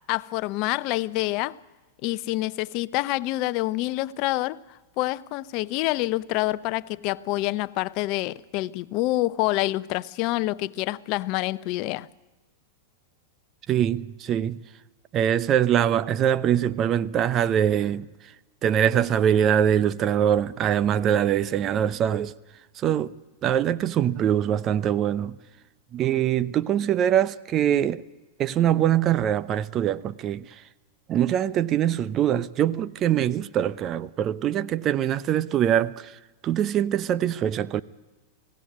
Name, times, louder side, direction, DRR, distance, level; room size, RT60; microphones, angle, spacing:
voice 1, 0.1-1.6 2.0-4.6 5.0-12.1, left 18 dB, 45° left, 0.7 m, -27 dB
voice 2, 13.7-14.6 15.1-18.3 18.6-22.3 22.7-23.1 23.4-25.4 25.9-28.0 28.4-30.6 31.1-37.8, right 10 dB, 35° right, 0.8 m, -23 dB
23.5 x 16.5 x 9.5 m
figure-of-eight pair, 95°, 0 cm